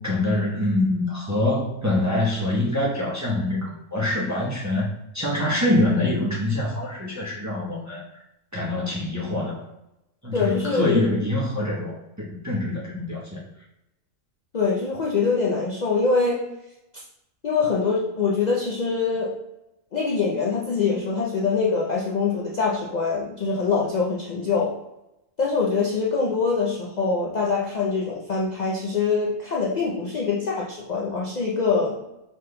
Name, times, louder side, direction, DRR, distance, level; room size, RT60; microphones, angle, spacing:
voice 1, 0.0-4.9 5.1-8.0 8.5-9.7 10.2-13.4, left 1 dB, 20° right, -5 dB, 0.5 m, -25 dB
voice 2, 10.3-11.1 14.5-16.4 17.4-19.3 19.9-24.7 25.4-32.0, left 4 dB, 80° left, -3 dB, 0.3 m, -24 dB
5.0 x 4.1 x 2.2 m, 0.90 s
omnidirectional pair, 1.5 m